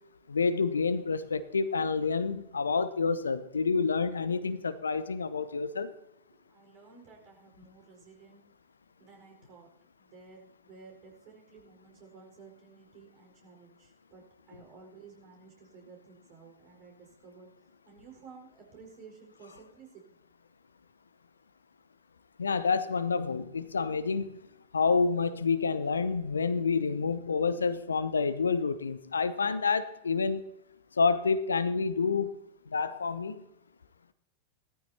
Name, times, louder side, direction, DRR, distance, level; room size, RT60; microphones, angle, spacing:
voice 1, 0.3-5.9 22.4-24.3 24.7-30.4 31.0-32.3 32.7-33.4, left 5 dB, 75° left, 14 dB, 0.7 m, -28 dB
voice 2, 6.3-8.4 9.0-9.7 10.0-17.5 17.8-20.0, right 5 dB, 40° right, 1 dB, 4.7 m, -54 dB
19.0 x 13.5 x 2.8 m, 0.81 s
figure-of-eight pair, 90°, 0 cm